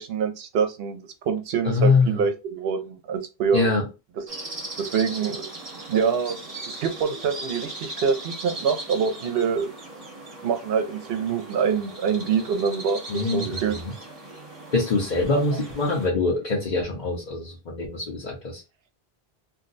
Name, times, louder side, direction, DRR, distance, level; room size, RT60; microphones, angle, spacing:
voice 1, 0.0-3.7 4.2-4.3 4.8-5.5 5.9-6.4 6.6-9.7 10.4-13.0 13.3-13.8 15.3-15.4, right 6 dB, 75° right, 0.8 m, -25 dB
voice 2, 1.6-2.3 3.5-3.8 13.1-13.9 14.7-18.6, left 3 dB, 50° left, 0.8 m, -24 dB
sound 1, 4.3-16.1, right 2 dB, 35° right, 0.9 m, -38 dB
2.6 x 2.1 x 3.8 m
omnidirectional pair, 1.1 m